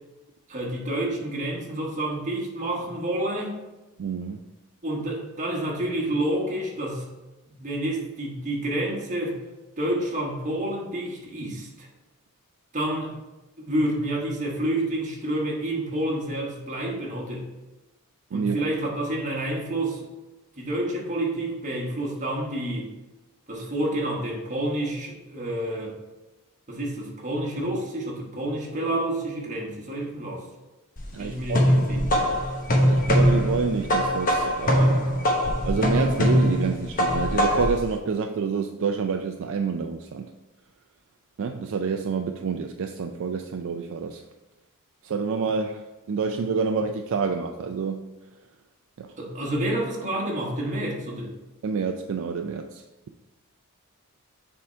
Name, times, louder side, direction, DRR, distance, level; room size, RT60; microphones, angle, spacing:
voice 1, 0.5-3.5 4.8-7.1 7.5-9.4 9.8-11.9 12.7-13.1 13.6-17.5 18.3-20.1 20.6-22.9 23.5-26.0 26.7-30.5 31.2-32.3 49.2-51.3, right 1 dB, 35° right, -1 dB, 1.3 m, -29 dB
voice 2, 4.0-4.4 18.3-18.6 31.1-31.6 32.8-35.1 35.6-40.3 41.4-44.2 45.0-48.0 49.0-49.1 51.6-52.8, right 5 dB, 60° right, 5 dB, 0.4 m, -28 dB
sound 1, 31.0-37.8, equal, 40° left, 1.0 m, -22 dB
6.9 x 3.7 x 4.4 m, 1.1 s
head